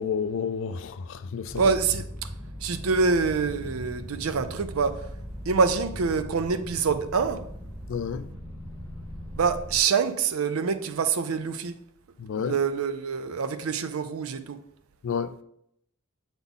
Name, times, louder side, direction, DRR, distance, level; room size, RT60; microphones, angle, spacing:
voice 1, 0.0-1.6 7.9-8.3 12.2-12.6 15.0-15.3, left 6 dB, 65° left, 0.4 m, -30 dB
sound 1, 1.5-9.8, equal, ahead, 1.2 m, -39 dB
voice 2, 1.5-2.3 2.6-5.1 5.5-7.4 9.4-11.8 12.3-14.6, right 5 dB, 80° right, 0.5 m, -26 dB
7.1 x 4.0 x 3.6 m
head